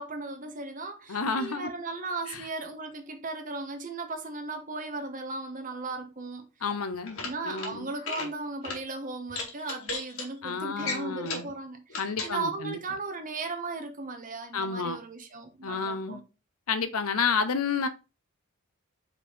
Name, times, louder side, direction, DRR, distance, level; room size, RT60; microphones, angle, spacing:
voice 1, 0.0-6.5 7.2-16.2, right 3 dB, 40° right, 1.2 m, -36 dB
voice 2, 1.1-1.7 2.3-2.5 6.6-7.2 7.4-7.9 10.4-11.5 12.0-12.8 14.5-15.0 15.6-16.2 16.7-17.9, left 5 dB, 85° left, 0.9 m, -30 dB
sound 1, 6.9-7.7 8.0-8.3 8.6-8.8 9.3-10.3 10.8-11.5 11.9-12.3, left 3 dB, 65° left, 2.0 m, -35 dB
5.4 x 4.6 x 4.5 m
head